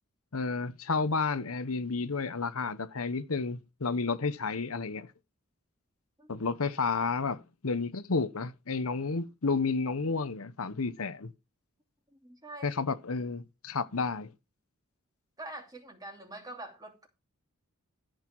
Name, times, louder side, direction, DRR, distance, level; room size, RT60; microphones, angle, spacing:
voice 1, 0.3-5.1 6.3-11.3 12.6-14.3, left 4 dB, 75° left, 0.9 m, -31 dB
voice 2, 12.1-12.7 15.4-17.1, right 2 dB, 15° right, 2.8 m, -45 dB
13.5 x 6.6 x 4.6 m
head